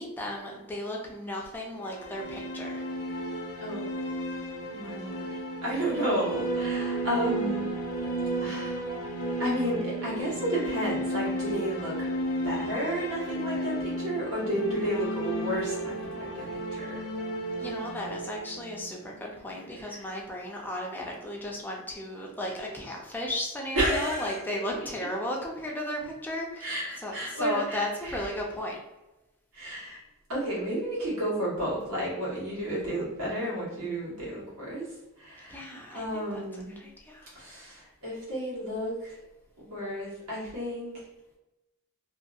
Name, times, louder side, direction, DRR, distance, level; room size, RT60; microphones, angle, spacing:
voice 1, 0.0-2.8 17.6-26.7 27.0-28.8 35.5-36.4 36.8-37.3, left 1 dB, 10° left, -1 dB, 0.4 m, -35 dB
sound 1, 1.7-19.7, right 1 dB, 75° left, 0.6 m, -33 dB
voice 2, 3.6-3.9 4.7-7.7 8.4-8.8 9.4-12.1 12.4-16.1 16.3-16.8 19.8-20.1 23.7-24.4 26.6-28.3 29.5-30.0 30.3-34.9 35.2-35.6 35.9-36.8 37.3-39.1 39.6-41.0, equal, 80° right, -6 dB, 1.3 m, -32 dB
2.7 x 2.6 x 2.4 m, 1.0 s
head